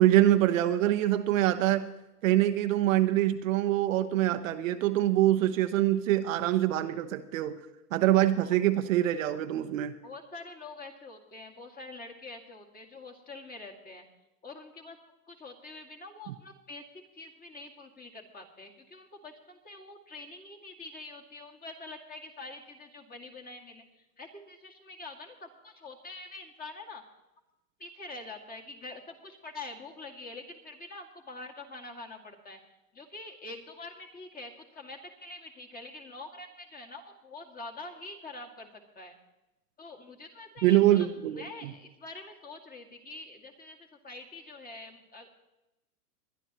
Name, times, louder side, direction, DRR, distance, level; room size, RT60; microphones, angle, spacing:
voice 1, 0.0-1.9 2.2-7.6 7.9-9.9 16.3-16.4 40.6-41.7, right 13 dB, 55° right, 9 dB, 0.9 m, -24 dB
voice 2, 10.0-14.1 14.4-15.0 15.3-16.8 17.1-23.8 24.2-27.0 27.8-32.6 32.9-38.7 39.0-39.2 39.8-43.8 44.0-45.3, left 2 dB, 20° left, 3 dB, 2.3 m, -45 dB
21.5 x 11.5 x 3.0 m, 0.97 s
hypercardioid pair, 110°, 47 cm